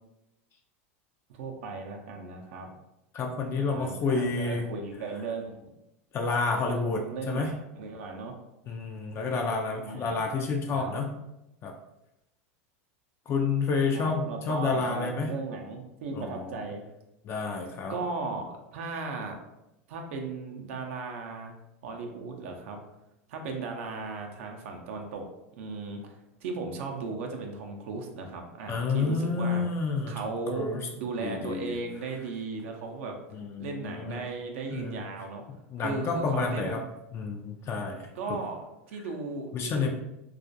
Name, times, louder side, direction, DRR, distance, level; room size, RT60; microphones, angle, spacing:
voice 1, 1.3-2.7 3.5-5.7 6.6-8.3 9.8-10.2 10.7-10.9 13.9-16.8 17.9-18.5 18.7-19.4 19.9-21.6 21.8-22.8 23.3-25.2 25.6-26.1 26.4-29.6 30.1-30.7 31.0-33.1 33.6-35.4 35.8-36.8 38.1-38.6 38.9-39.9, right 4 dB, 70° right, 2 dB, 0.5 m, -36 dB
voice 2, 3.1-4.7 6.1-7.5 8.7-11.1 11.6-11.7 13.3-15.3 16.1-16.6 17.2-18.0 28.7-30.2 30.5-30.8 31.2-31.8 33.3-34.2 34.7-35.1 35.7-36.8 37.1-38.4 39.5-39.9, left 4 dB, 35° left, 2 dB, 0.3 m, -29 dB
2.3 x 2.1 x 2.6 m, 0.88 s
hypercardioid pair, 100°, 7 cm